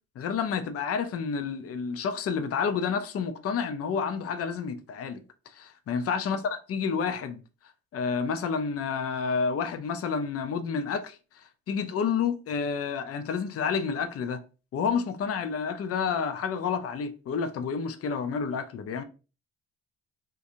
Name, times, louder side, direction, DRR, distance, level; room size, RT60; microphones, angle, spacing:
voice 1, 0.2-5.2 5.5-6.4 6.7-7.4 7.9-14.4 14.7-19.0, left 6 dB, 50° left, 0.6 m, -29 dB
3.7 x 2.7 x 2.6 m
cardioid pair, 90°, 30 cm